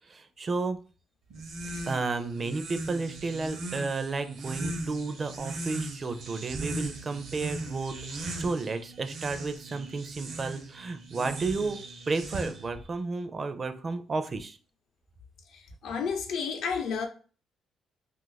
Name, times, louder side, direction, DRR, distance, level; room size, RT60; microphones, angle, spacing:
voice 1, 0.1-0.8 1.9-14.6, right 3 dB, 35° right, 0.4 m, -32 dB
sound 1, 1.3-12.8, right 2 dB, 70° right, 0.7 m, -38 dB
voice 2, 15.5-17.1, left 6 dB, 75° left, 0.6 m, -31 dB
2.6 x 2.4 x 3.9 m
cardioid pair, 90°, 0 cm